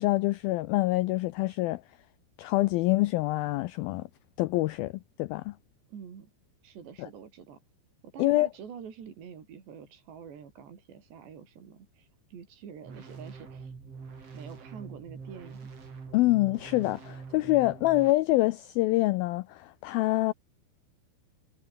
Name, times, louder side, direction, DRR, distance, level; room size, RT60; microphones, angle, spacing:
voice 1, 0.0-1.8 2.4-4.1 4.4-4.9 5.2-5.5 7.0-7.1 8.2-8.5 16.1-20.3, left 19 dB, 90° left, 2.1 m, -26 dB
voice 2, 5.9-6.3 6.6-7.6 8.0-13.7 14.3-15.7, right 7 dB, 75° right, 6.1 m, -46 dB
sound 1, 12.8-18.1, right 5 dB, 35° right, 4.4 m, -44 dB
omnidirectional pair, 5.0 m